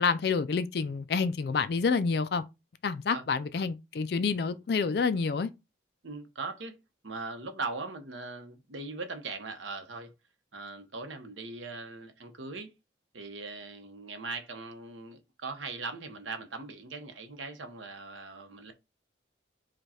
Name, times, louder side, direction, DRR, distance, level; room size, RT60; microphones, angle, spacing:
voice 1, 0.0-2.4 2.8-5.5, left 5 dB, 55° left, 0.4 m, -28 dB
voice 2, 6.0-6.8 7.0-10.1 10.5-12.7 13.1-18.7, right 3 dB, 85° right, 0.9 m, -40 dB
5.0 x 2.3 x 4.2 m
head